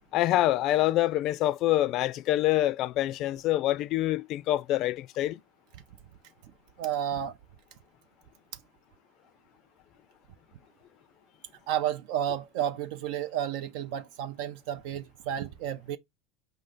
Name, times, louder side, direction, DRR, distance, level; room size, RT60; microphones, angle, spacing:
voice 1, 0.1-5.4, left 14 dB, 55° left, 0.4 m, -26 dB
voice 2, 6.8-7.3 11.7-16.0, right 10 dB, 65° right, 0.5 m, -31 dB
5.0 x 2.6 x 3.8 m
hypercardioid pair, 90°, 0 cm